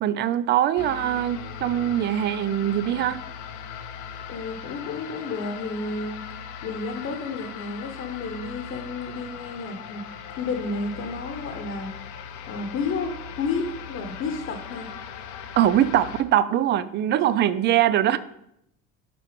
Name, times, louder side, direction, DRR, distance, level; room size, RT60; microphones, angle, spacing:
voice 1, 0.0-3.2 15.6-18.2, right 11 dB, 35° right, 15 dB, 0.4 m, -22 dB
sound 1, 0.8-16.2, left 7 dB, 65° left, 0.7 m, -39 dB
voice 2, 4.3-6.2 6.6-12.0 12.5-14.9 17.1-17.2, left 4 dB, 45° left, 4 dB, 1.0 m, -31 dB
6.0 x 4.5 x 5.1 m, 0.76 s
cardioid pair, 135°, 32 cm